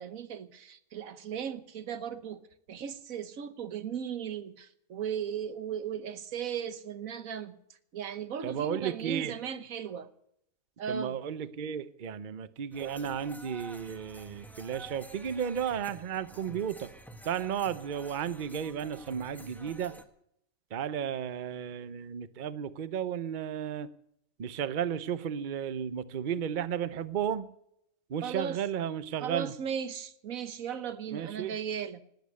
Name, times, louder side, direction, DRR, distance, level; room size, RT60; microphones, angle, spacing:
voice 1, 0.0-2.4 2.7-7.6 7.9-10.1 10.8-11.1 28.2-28.6 29.2-32.0, right 8 dB, 85° right, 1.5 m, -37 dB
voice 2, 8.4-9.3 10.9-16.9 17.2-19.9 20.7-23.9 24.4-27.5 28.1-29.5 31.1-31.6, right 8 dB, 45° right, 0.8 m, -33 dB
sound 1, 12.7-20.0, right 1 dB, ahead, 1.2 m, -50 dB
18.5 x 8.6 x 8.2 m
omnidirectional pair, 1.4 m